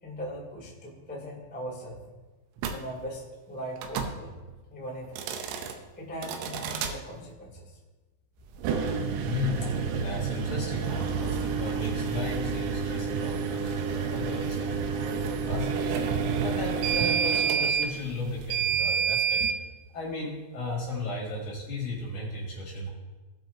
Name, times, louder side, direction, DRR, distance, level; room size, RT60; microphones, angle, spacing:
voice 1, 0.0-2.0 2.7-4.3 4.7-5.2 5.9-7.8 9.6-9.8, equal, 5° left, -4 dB, 1.2 m, -39 dB
sound 1, 2.6-2.8 3.8-4.1 5.0-5.7 6.2-6.9 8.5-19.6, right 6 dB, 85° right, 3.4 m, -29 dB
voice 2, 9.2-16.1 16.4-19.5 19.9-22.9, left 1 dB, 50° left, -5 dB, 3.0 m, -35 dB
19.0 x 7.8 x 2.8 m, 1.2 s
omnidirectional pair, 5.7 m